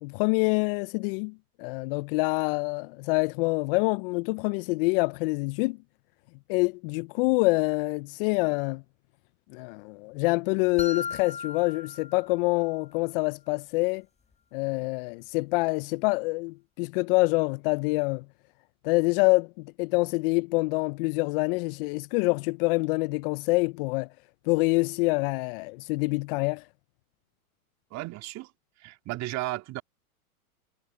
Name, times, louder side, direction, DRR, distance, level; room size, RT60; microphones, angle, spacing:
voice 1, 0.0-5.8 6.5-8.8 9.5-14.0 14.5-18.2 18.8-24.1 24.5-26.6, left 26 dB, 40° left, 0.6 m, -26 dB
sound 1, 10.8-12.8, left 5 dB, 15° left, 7.6 m, -38 dB
voice 2, 27.9-28.5 28.8-29.8, right 18 dB, 35° right, 2.6 m, -34 dB
hypercardioid pair, 110°, 44 cm